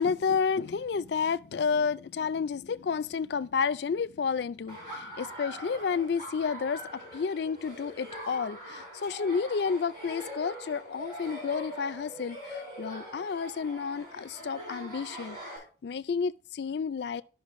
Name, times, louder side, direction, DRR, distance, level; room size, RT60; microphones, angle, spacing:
voice 1, 0.0-17.2, left 5 dB, 60° left, 0.4 m, -31 dB
Laughter, 4.7-15.6, equal, 25° right, 5.1 m, -43 dB
12.0 x 5.7 x 3.1 m
head